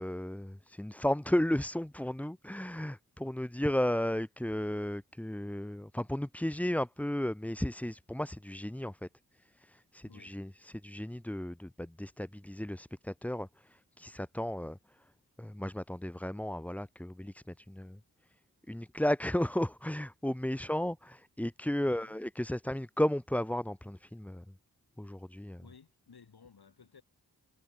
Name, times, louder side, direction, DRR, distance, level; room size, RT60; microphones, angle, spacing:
voice 1, 0.0-9.1 9.6-14.8 15.4-18.0 18.7-24.4 25.0-25.6, left 1 dB, 5° left, 0.7 m, -34 dB
voice 2, 10.0-10.4 21.8-22.2 25.6-27.0, left 6 dB, 65° left, 4.2 m, -57 dB
cardioid pair, 45°, 41 cm